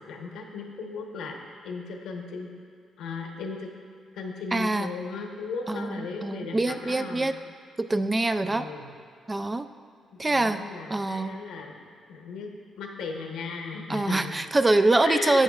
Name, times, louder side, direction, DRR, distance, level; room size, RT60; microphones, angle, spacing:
voice 1, 0.0-1.4 1.6-2.5 3.0-3.7 4.1-7.3 8.4-8.9 9.4-9.5 10.2-11.8 12.1-12.5 12.8-14.3 15.0-15.4, left 4 dB, 85° left, 2 dB, 1.0 m, -36 dB
voice 2, 4.5-4.9 5.7-7.3 7.8-8.7 9.3-9.7 10.2-10.6 10.9-11.4 13.9-15.4, right 2 dB, 20° right, 10 dB, 0.3 m, -24 dB
12.0 x 8.4 x 2.4 m, 2.2 s
cardioid pair, 80°, 0 cm